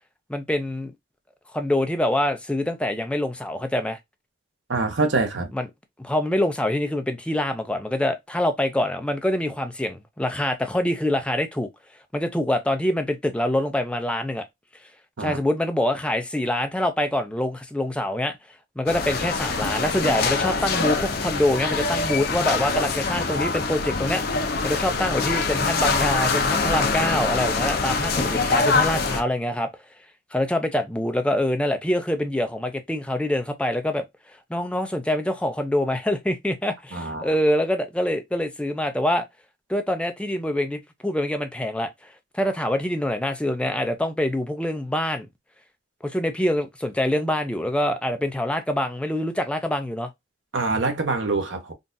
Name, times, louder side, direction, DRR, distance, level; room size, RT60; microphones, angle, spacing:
voice 1, 0.3-0.9 1.5-4.0 5.5-5.7 6.0-11.7 12.1-14.4 15.2-18.4 18.8-29.7 30.3-34.0 34.5-39.3 39.7-45.3 46.0-50.1, left 1 dB, 5° left, 0.5 m, -25 dB
voice 2, 4.7-5.5 15.2-15.4 36.9-37.3 50.5-51.7, right 3 dB, 80° right, 0.9 m, -25 dB
sound 1, 18.9-29.2, left 4 dB, 55° left, 0.6 m, -24 dB
3.8 x 2.4 x 2.6 m
head